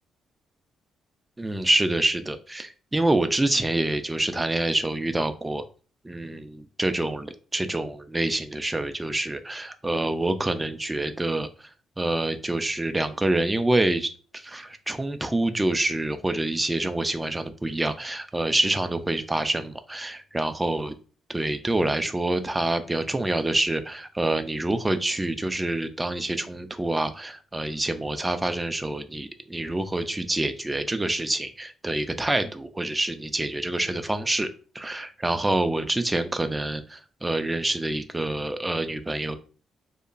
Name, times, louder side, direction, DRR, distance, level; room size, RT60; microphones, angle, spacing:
voice 1, 1.4-5.6 6.0-11.7 12.0-20.9 21.3-34.5 34.7-39.4, right 2 dB, 15° right, 9 dB, 0.3 m, -26 dB
2.8 x 2.2 x 2.4 m, 0.38 s
cardioid pair, 90°, 0 cm